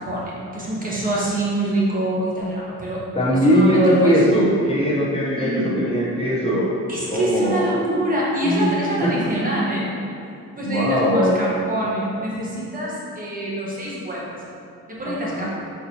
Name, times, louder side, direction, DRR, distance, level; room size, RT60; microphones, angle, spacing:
voice 1, 0.0-3.0 3.5-4.2 5.4-5.8 6.9-9.9 10.6-14.4 14.9-15.5, right 1 dB, 30° right, -6 dB, 1.2 m, -25 dB
voice 2, 3.1-6.7 7.1-7.7 8.4-8.7 9.0-9.1 10.6-11.4 15.0-15.5, equal, 20° left, -6 dB, 0.7 m, -19 dB
4.4 x 4.0 x 2.8 m, 2.5 s
cardioid pair, 90°, 30 cm